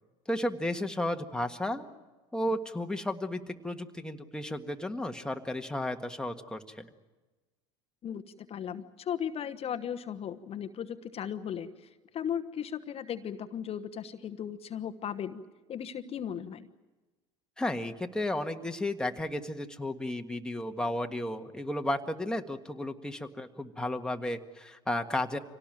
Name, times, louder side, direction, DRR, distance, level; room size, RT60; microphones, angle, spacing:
voice 1, 0.3-1.9 2.3-6.9 17.6-25.4, left 1 dB, 5° left, 4 dB, 1.6 m, -33 dB
voice 2, 8.0-15.4 15.7-16.7, left 8 dB, 40° left, 10 dB, 1.1 m, -37 dB
25.5 x 18.0 x 9.0 m, 1.2 s
hypercardioid pair, 85°, 15 cm